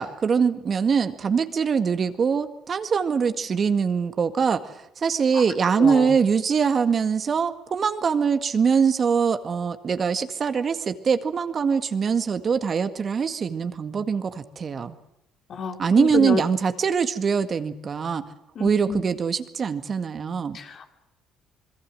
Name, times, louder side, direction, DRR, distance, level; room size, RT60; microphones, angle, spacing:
voice 1, 0.0-15.0 15.8-18.2 18.6-20.6, right 6 dB, 45° right, 9 dB, 1.9 m, -23 dB
voice 2, 15.5-16.4 18.6-19.0 20.5-20.9, left 6 dB, 55° left, 5 dB, 3.4 m, -29 dB
26.0 x 21.5 x 7.7 m, 0.79 s
supercardioid pair, 75°, 0 cm